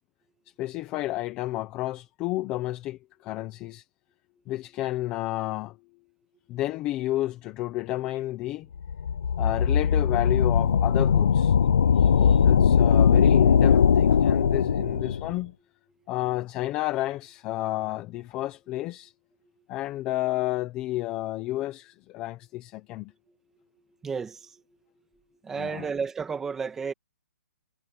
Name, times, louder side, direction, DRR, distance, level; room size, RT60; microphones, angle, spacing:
voice 1, 0.6-3.8 4.5-5.8 6.5-8.7 9.4-11.5 12.0-15.5 16.1-19.1 19.7-23.1 25.6-25.8, left 16 dB, 10° left, 0.7 m, -31 dB
sound 1, 8.8-15.3, left 7 dB, 50° left, 0.3 m, -20 dB
voice 2, 11.9-12.4 24.0-24.6 25.4-26.9, right 5 dB, 5° right, 1.4 m, -33 dB
hypercardioid pair, 180°, 8 cm